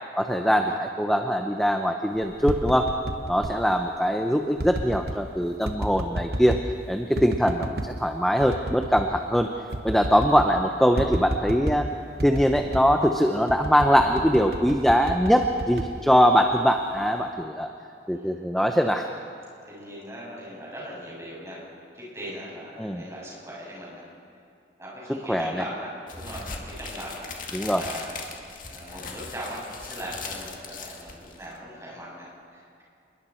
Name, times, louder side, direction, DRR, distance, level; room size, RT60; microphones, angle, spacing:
voice 1, 0.2-2.9 3.3-6.6 6.9-9.5 9.8-11.9 12.2-17.7 18.1-19.1 22.8-23.0 25.1-25.6 27.5-27.8, equal, ahead, 4 dB, 0.7 m, -22 dB
sound 1, 2.2-3.6 4.6-5.2 5.7-6.7 7.2-7.9 8.4-9.1 9.4-9.5 9.7-10.5 11.0-11.9 12.2-12.9 13.5-16.6 17.0-17.4, right 1 dB, 60° right, 1.2 m, -32 dB
voice 2, 19.6-21.6 21.9-24.1 24.8-28.4 28.7-32.8, equal, 15° right, -5 dB, 7.2 m, -39 dB
sound 2, 26.1-31.6, left 4 dB, 45° left, 2.2 m, -39 dB
28.0 x 21.5 x 4.5 m, 2.6 s
head